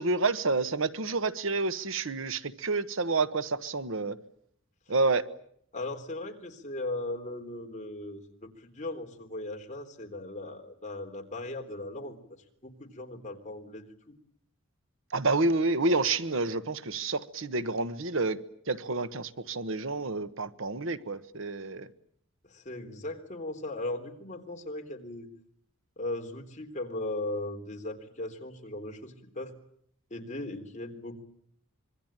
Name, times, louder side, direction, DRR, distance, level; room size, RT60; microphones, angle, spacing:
voice 1, 0.0-4.2 4.9-5.3 15.1-21.9, right 3 dB, 65° right, 12 dB, 1.3 m, -29 dB
voice 2, 5.7-12.2 12.6-14.1 22.4-25.3 26.0-29.5 30.1-31.2, left 2 dB, 35° left, 3 dB, 3.7 m, -38 dB
26.0 x 23.0 x 9.0 m, 0.69 s
head